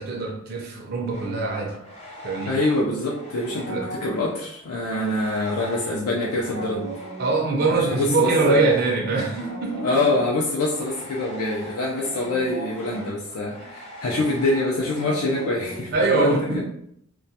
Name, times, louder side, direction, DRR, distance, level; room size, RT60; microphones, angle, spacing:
voice 1, 0.0-1.8 2.2-2.6 3.7-3.9 7.2-9.9 13.6-13.7 15.9-16.6, right 3 dB, 45° right, -1 dB, 0.4 m, -23 dB
sound 1, 1.1-2.8 3.1-15.9, equal, 30° left, 0.6 m, -39 dB
voice 2, 2.5-6.9 7.7-8.6 9.8-16.6, left 2 dB, 85° left, -4 dB, 0.4 m, -25 dB
2.2 x 2.1 x 2.7 m, 0.74 s
head